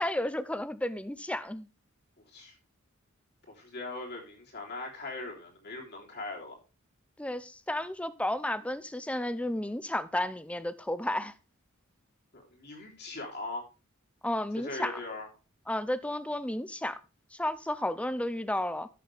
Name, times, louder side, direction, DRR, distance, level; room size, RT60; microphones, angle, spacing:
voice 1, 0.0-1.7 7.2-11.3 14.2-15.0 15.7-17.0 17.4-18.9, left 1 dB, 5° left, 0.6 m, -32 dB
voice 2, 3.5-6.6 12.3-13.6 14.5-15.3, left 2 dB, 55° left, 3.5 m, -40 dB
12.5 x 6.7 x 3.4 m
head